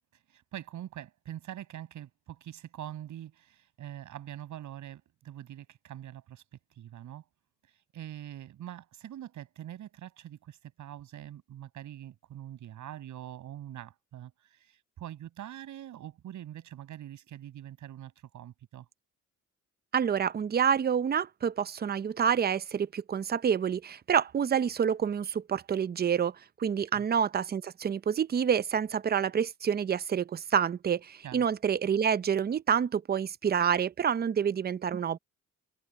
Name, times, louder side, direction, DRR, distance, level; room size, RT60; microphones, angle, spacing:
voice 1, 0.1-6.4 6.7-7.2 7.6-18.9 26.9-27.0 31.2-31.4, right 11 dB, 75° right, 7.3 m, -44 dB
voice 2, 19.9-35.2, right 7 dB, 30° right, 0.6 m, -28 dB
cardioid pair, 90°, 30 cm